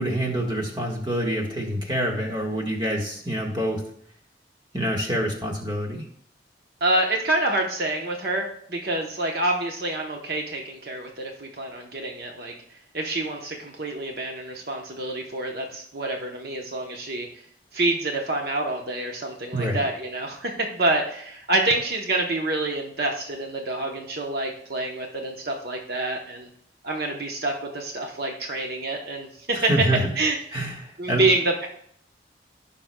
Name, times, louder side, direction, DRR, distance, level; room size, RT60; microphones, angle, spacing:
voice 1, 0.0-3.8 4.7-6.0 19.5-19.8 29.5-30.0 30.5-31.3, right 1 dB, 25° right, 0 dB, 1.5 m, -26 dB
voice 2, 6.8-12.5 12.9-17.3 17.7-26.5 26.8-29.7 30.2-30.4 31.0-31.7, right 2 dB, 55° right, 1 dB, 0.9 m, -27 dB
15.5 x 5.8 x 2.2 m, 0.66 s
head